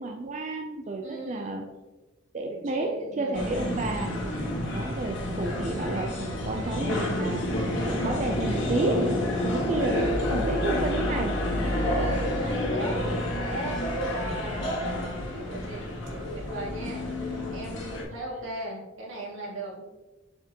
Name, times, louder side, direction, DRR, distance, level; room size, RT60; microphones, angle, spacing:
voice 1, 0.0-1.7 2.3-4.2 4.7-9.0 9.4-11.4 11.9-12.0 16.8-16.9, right 2 dB, 35° right, 3 dB, 0.4 m, -31 dB
voice 2, 1.0-1.6 2.5-4.1 11.7-15.9 16.3-19.8, right 1 dB, 85° right, -3 dB, 2.2 m, -37 dB
sound 1, 3.3-18.0, left 1 dB, 70° left, 1.6 m, -29 dB
6.7 x 6.0 x 2.9 m, 1.1 s
head